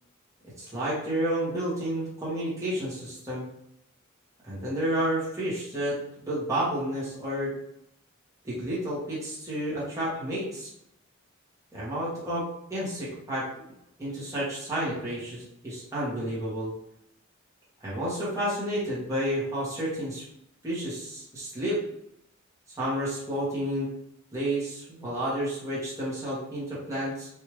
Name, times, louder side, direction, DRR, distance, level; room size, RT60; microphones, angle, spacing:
voice 1, 0.6-3.5 4.4-6.0 6.2-7.5 8.4-10.7 11.7-12.4 12.7-13.5 14.0-16.7 17.8-20.2 20.6-21.8 22.8-23.9 24.3-27.3, right 1 dB, 15° right, -8 dB, 1.2 m, -30 dB
3.3 x 2.6 x 3.0 m, 0.78 s
head